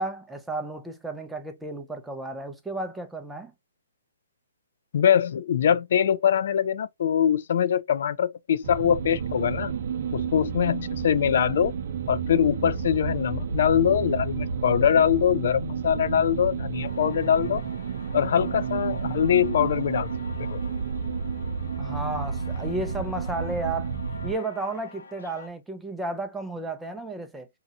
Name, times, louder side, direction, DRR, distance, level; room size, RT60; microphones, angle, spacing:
voice 1, 0.0-3.5 21.8-24.0 24.2-27.5, right 2 dB, 5° right, 0.6 m, -33 dB
voice 2, 4.9-9.7 10.1-11.7 12.1-17.6 18.1-20.1 20.5-20.6, left 9 dB, 60° left, 0.5 m, -23 dB
sound 1, 8.6-24.3, right 6 dB, 60° right, 0.6 m, -31 dB
sound 2, 16.8-25.5, left 3 dB, 75° left, 1.0 m, -46 dB
2.8 x 2.3 x 4.1 m
hypercardioid pair, 135°, 0 cm